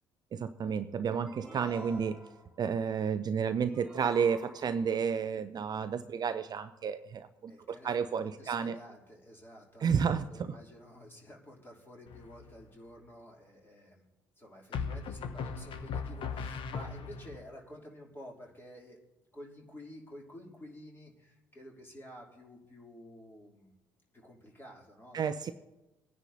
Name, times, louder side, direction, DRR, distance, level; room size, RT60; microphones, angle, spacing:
voice 1, 0.3-2.2 2.6-8.8 9.8-10.6 25.1-25.5, right 6 dB, 35° right, 11 dB, 0.5 m, -31 dB
sound 1, 1.3-2.6 3.7-5.0, right 2 dB, 5° right, 2.4 m, -49 dB
voice 2, 7.5-14.1 14.4-19.0 19.3-23.7 24.1-25.5, equal, 20° left, -1 dB, 3.1 m, -51 dB
sound 2, 12.1-12.6 14.7-17.4, left 5 dB, 45° left, 1.0 m, -38 dB
20.0 x 9.8 x 2.8 m, 0.99 s
figure-of-eight pair, 55°, 12 cm